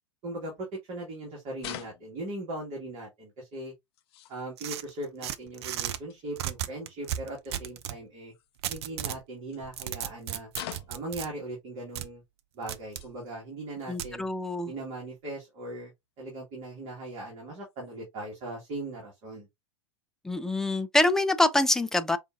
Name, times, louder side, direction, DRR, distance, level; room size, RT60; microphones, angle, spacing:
voice 1, 0.2-3.7 4.3-8.3 8.7-10.5 10.9-12.2 12.5-14.3 14.7-15.9 16.2-19.5, right 2 dB, 40° right, 1.8 m, -39 dB
sound 1, 1.6-2.4 3.5-3.6 3.9-4.5 6.1-6.3 8.3-8.9 9.5-9.6 10.5-11.1 12.2-12.3 12.7-13.3 13.7-13.8 14.9-15.0 16.2-16.3 17.6-18.0, left 12 dB, 55° left, 0.5 m, -44 dB
sound 2, 4.6-6.0 6.4-8.0 8.6-9.2 9.6-11.3 12.0-12.1 12.7-13.1 14.0-14.1, right 11 dB, 60° right, 0.5 m, -35 dB
voice 2, 13.9-14.7 20.2-22.2, left 2 dB, 5° left, 0.4 m, -25 dB
4.9 x 2.6 x 2.5 m
figure-of-eight pair, 90°, 16 cm